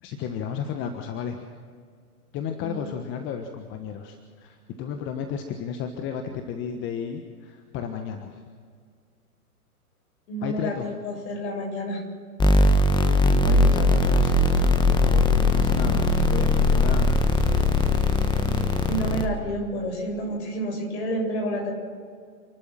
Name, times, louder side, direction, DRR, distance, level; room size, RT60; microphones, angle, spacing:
voice 1, 0.0-1.5 2.3-8.4 10.4-10.9 13.3-17.2 17.5-18.0, left 7 dB, 25° left, 6 dB, 1.4 m, -33 dB
voice 2, 10.3-12.0 18.9-21.7, equal, 50° left, 2 dB, 7.6 m, -29 dB
sound 1, 12.4-19.2, left 2 dB, 10° left, 1.5 m, -20 dB
28.5 x 12.0 x 7.5 m, 2.1 s
hypercardioid pair, 120°, 45 cm